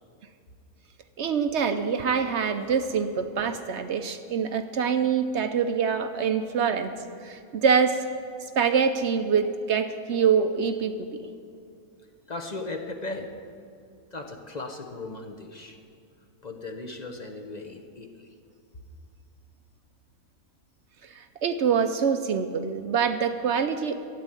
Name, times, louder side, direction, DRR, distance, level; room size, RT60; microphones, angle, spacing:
voice 1, 1.2-6.9 7.2-8.1 8.6-11.1 21.0-23.9, right 6 dB, 60° right, 9 dB, 0.8 m, -25 dB
voice 2, 12.3-13.3 14.1-15.8 16.4-18.3, left 2 dB, 35° left, 5 dB, 0.8 m, -37 dB
12.5 x 8.6 x 9.0 m, 2.4 s
omnidirectional pair, 1.6 m